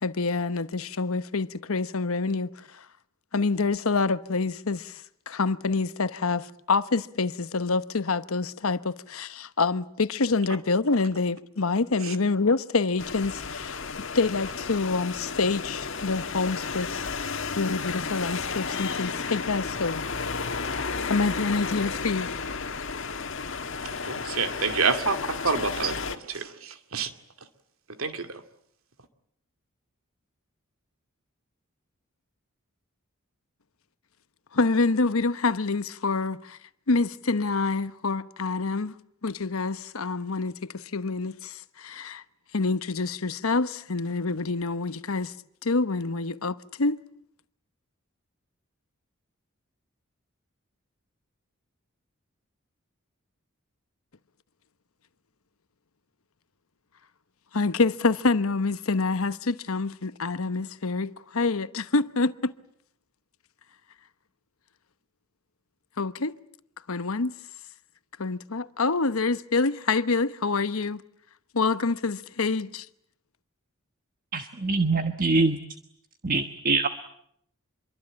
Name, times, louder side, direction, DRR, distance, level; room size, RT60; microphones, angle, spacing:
voice 1, 0.0-2.8 3.3-13.8 14.1-17.1 17.6-20.1 21.1-22.3 34.5-36.6 36.9-38.9 39.2-42.2 42.5-45.3 45.6-47.0 57.5-62.5 66.0-66.3 66.9-67.3 68.2-71.0 71.5-72.9, left 3 dB, 85° left, 1.0 m, -27 dB
sound 1, 13.0-26.2, left 5 dB, 60° left, 1.8 m, -33 dB
voice 2, 23.8-27.1 28.0-28.4, right 4 dB, 80° right, 2.4 m, -28 dB
voice 3, 74.3-75.6 76.2-76.9, right 3 dB, 40° right, 1.3 m, -24 dB
26.5 x 23.5 x 8.8 m
head